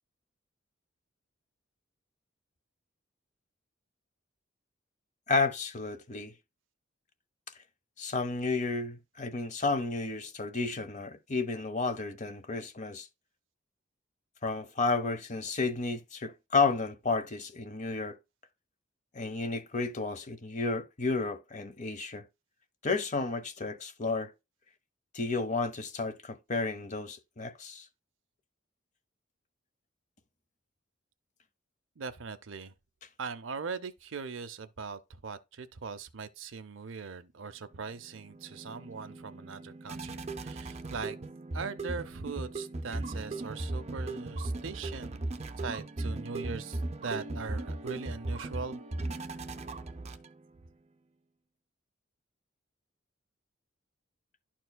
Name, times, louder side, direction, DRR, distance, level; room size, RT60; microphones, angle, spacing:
voice 1, 5.3-6.3 8.0-13.1 14.4-18.2 19.1-22.2 22.8-24.3 25.1-27.8, left 3 dB, 40° left, 0.8 m, -32 dB
voice 2, 32.0-32.7 33.2-41.2 41.5-45.2 45.6-48.8, right 5 dB, 80° right, 0.6 m, -40 dB
sound 1, 37.8-50.6, right 2 dB, 35° right, 0.6 m, -38 dB
11.5 x 4.5 x 2.2 m
head